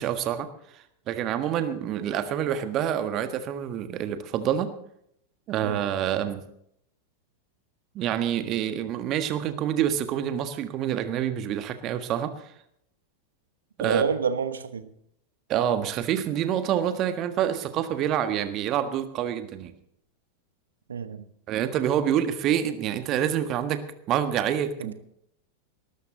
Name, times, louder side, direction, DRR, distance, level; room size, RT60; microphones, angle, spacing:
voice 1, 0.0-4.7 5.5-6.4 7.9-12.3 13.8-14.0 15.5-19.7 21.5-23.8 24.1-24.9, right 10 dB, 35° right, 1.5 m, -27 dB
voice 2, 13.8-14.9 20.9-21.2 24.8-24.9, right 6 dB, 70° right, 1.1 m, -28 dB
19.0 x 13.0 x 3.9 m
figure-of-eight pair, 90°, 0 cm